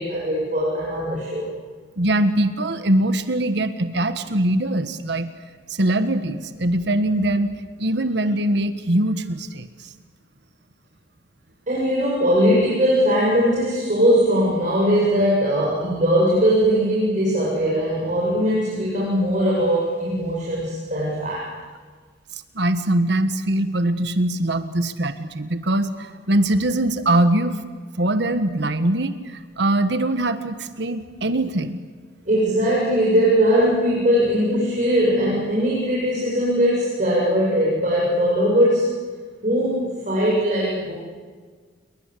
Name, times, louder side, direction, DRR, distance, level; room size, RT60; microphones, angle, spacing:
voice 1, 0.0-1.4 11.7-21.5 32.3-39.0 39.4-40.9, equal, 45° right, -6 dB, 7.8 m, -20 dB
voice 2, 2.0-5.3 5.7-7.5 7.8-9.7 22.5-27.6 28.0-31.8, right 1 dB, 65° right, 10 dB, 1.4 m, -22 dB
29.5 x 22.5 x 8.4 m, 1.5 s
head